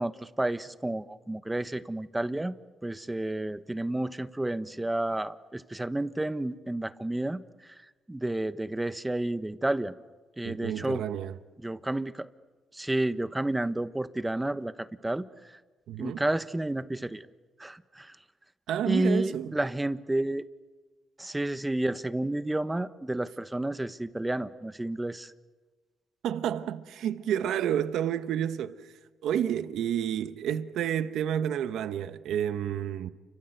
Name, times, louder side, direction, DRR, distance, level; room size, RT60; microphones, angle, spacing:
voice 1, 0.0-2.5 2.8-7.7 8.1-9.9 10.4-11.0 11.6-12.3 12.7-15.2 16.0-17.3 17.6-18.1 18.8-20.5 21.2-25.3, right 1 dB, 10° right, 1.1 m, -31 dB
voice 2, 10.4-11.4 15.9-16.2 18.7-19.6 26.2-28.9 29.2-33.1, right 10 dB, 80° right, 1.1 m, -30 dB
30.0 x 24.5 x 8.0 m
cardioid pair, 90°, 0 cm